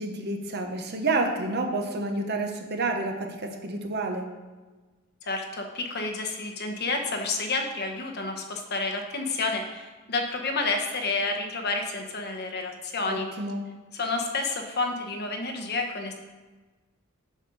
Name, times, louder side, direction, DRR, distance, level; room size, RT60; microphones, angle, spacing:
voice 1, 0.0-4.2 13.0-13.6, right 2 dB, 50° right, 4 dB, 1.0 m, -29 dB
voice 2, 5.2-13.3 13.9-16.1, left 3 dB, 50° left, 4 dB, 1.1 m, -30 dB
7.4 x 6.4 x 5.4 m, 1.3 s
head